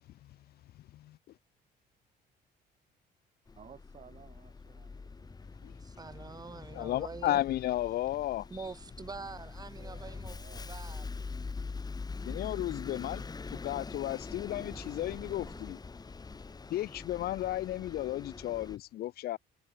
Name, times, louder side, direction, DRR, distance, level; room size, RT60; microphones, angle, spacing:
Bus, 3.5-18.8, left 4 dB, 25° left, 4.5 m, -44 dB
voice 1, 3.6-5.3 9.8-10.7 14.6-15.7, right 7 dB, 40° right, 7.1 m, -55 dB
voice 2, 5.8-7.4 8.5-10.4 10.6-11.1, right 4 dB, 25° right, 3.6 m, -45 dB
voice 3, 6.7-8.4 12.2-13.2 13.6-15.8 16.7-19.4, left 14 dB, 65° left, 1.1 m, -33 dB
cardioid pair, 110°, 17 cm